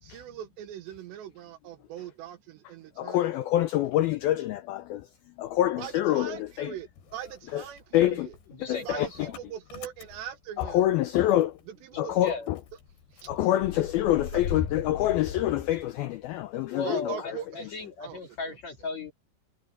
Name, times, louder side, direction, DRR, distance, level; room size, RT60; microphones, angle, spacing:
voice 1, 0.0-3.3 5.8-8.4 8.7-10.8 11.7-12.2 13.1-13.3 14.3-14.4 16.8-17.7 18.0-18.4, right 10 dB, 80° right, 3.2 m, -41 dB
voice 2, 3.0-5.1 5.4-6.7 7.5-7.6 7.9-8.3 8.7-9.1 10.6-11.6 12.0-12.6 13.3-17.2, left 13 dB, 85° left, 2.1 m, -26 dB
Motor vehicle (road) / Engine starting, 5.5-6.7 7.0-11.6 11.9-12.0 12.3-16.4, left 7 dB, 65° left, 4.9 m, -39 dB
voice 3, 8.5-9.3 11.9-12.5 16.7-19.1, left 3 dB, 50° left, 2.7 m, -37 dB
omnidirectional pair, 5.2 m